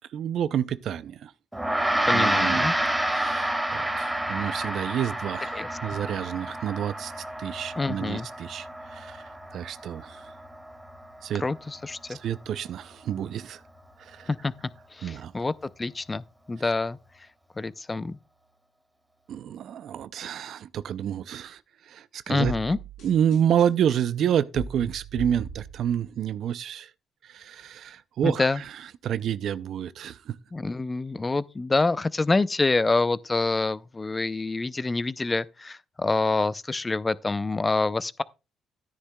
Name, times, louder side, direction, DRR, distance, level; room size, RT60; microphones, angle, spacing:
voice 1, 0.1-1.3 2.1-2.7 3.1-7.1 7.4-10.3 11.2-11.4 12.1-13.6 14.0-14.3 15.0-15.3 19.3-22.5 23.0-26.9 27.2-30.4, right 9 dB, 70° right, 0.4 m, -29 dB
Gong, 1.5-11.1, right 1 dB, 5° right, 1.9 m, -29 dB
voice 2, 2.1-2.7 5.5-5.7 7.8-8.3 11.4-12.2 14.3-14.5 14.9-17.0 17.6-18.2 22.3-22.8 28.2-28.6 30.5-38.2, left 3 dB, 25° left, 0.4 m, -26 dB
sound 1, 22.4-26.1, right 1 dB, 85° left, 4.3 m, -39 dB
13.0 x 9.8 x 2.2 m
cardioid pair, 90°, 0 cm